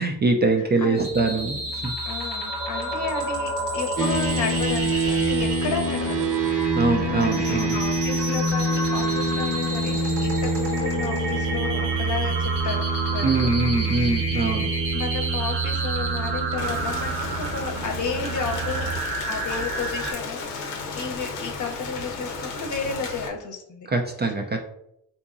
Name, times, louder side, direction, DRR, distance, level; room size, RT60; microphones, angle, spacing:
voice 1, 0.0-1.9 6.7-7.8 13.2-14.7 23.9-24.6, right 3 dB, 25° right, 3 dB, 0.4 m, -23 dB
voice 2, 0.6-1.0 2.0-6.3 7.2-13.5 14.0-14.2 14.9-18.9 19.3-23.9, left 4 dB, 45° left, 4 dB, 0.8 m, -32 dB
sound 1, 1.0-20.1, right 2 dB, 85° right, 1.5 m, -31 dB
sound 2, 4.0-19.0, right 2 dB, 45° right, 0.9 m, -26 dB
Rain, 16.6-23.3, left 4 dB, 85° left, 0.7 m, -34 dB
3.6 x 2.8 x 2.5 m, 0.77 s
hypercardioid pair, 50°, 42 cm